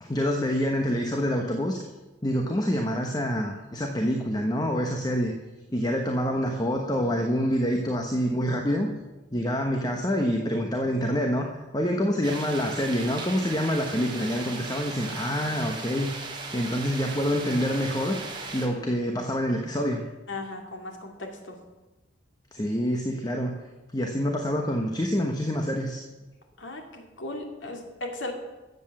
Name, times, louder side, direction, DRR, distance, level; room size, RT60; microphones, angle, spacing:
voice 1, 0.0-1.8 2.2-5.3 5.7-8.9 9.3-16.1 16.5-18.2 18.5-20.0 22.5-23.5 23.9-26.0, equal, 20° left, 3 dB, 1.1 m, -26 dB
sound 1, 12.2-18.7, right 3 dB, 25° right, 2.4 m, -37 dB
voice 2, 20.3-21.6 26.6-28.3, left 2 dB, 85° left, 3 dB, 2.6 m, -37 dB
14.0 x 8.1 x 7.6 m, 1.1 s
head